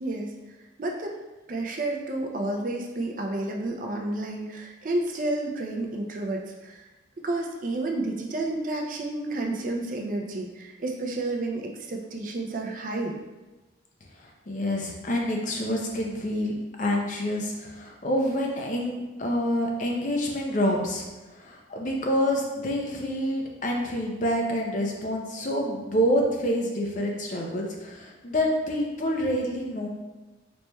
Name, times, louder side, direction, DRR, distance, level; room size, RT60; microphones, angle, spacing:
voice 1, 0.0-0.3 0.8-1.2 1.5-6.8 7.2-13.2, right 2 dB, 45° right, 1 dB, 0.4 m, -30 dB
voice 2, 14.2-21.1 21.3-29.9, equal, 40° left, 0 dB, 0.5 m, -27 dB
4.2 x 3.1 x 2.2 m, 1.1 s
head